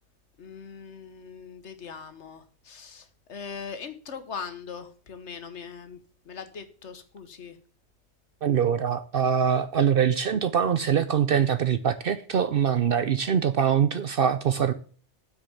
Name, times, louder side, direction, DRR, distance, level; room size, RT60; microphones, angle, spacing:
voice 1, 0.4-6.0 6.2-7.6, left 6 dB, 80° left, 10 dB, 1.5 m, -40 dB
voice 2, 8.4-14.7, right 8 dB, 60° right, 12 dB, 0.8 m, -23 dB
8.2 x 6.4 x 7.1 m, 0.42 s
omnidirectional pair, 1.2 m